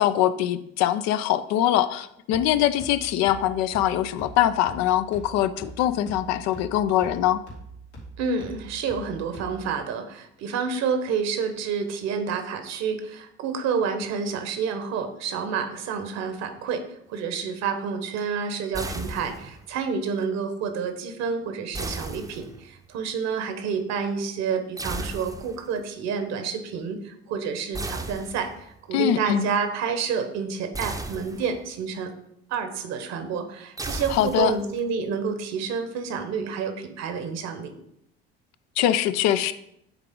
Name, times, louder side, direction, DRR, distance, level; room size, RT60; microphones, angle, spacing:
voice 1, 0.0-7.4 28.9-29.5 34.1-34.5 38.8-39.5, left 12 dB, 55° left, 12 dB, 0.5 m, -23 dB
sound 1, 2.3-9.8, right 2 dB, 85° left, 2.5 m, -43 dB
voice 2, 8.2-16.8 17.1-32.1 32.5-37.7, right 6 dB, 55° right, 7 dB, 1.2 m, -29 dB
sound 2, 18.7-19.7 21.7-22.8 24.8-25.7 27.7-28.8 30.7-31.7 33.8-34.8, right 2 dB, 10° right, 0.7 m, -35 dB
8.9 x 3.8 x 3.7 m, 0.75 s
hypercardioid pair, 60°, 31 cm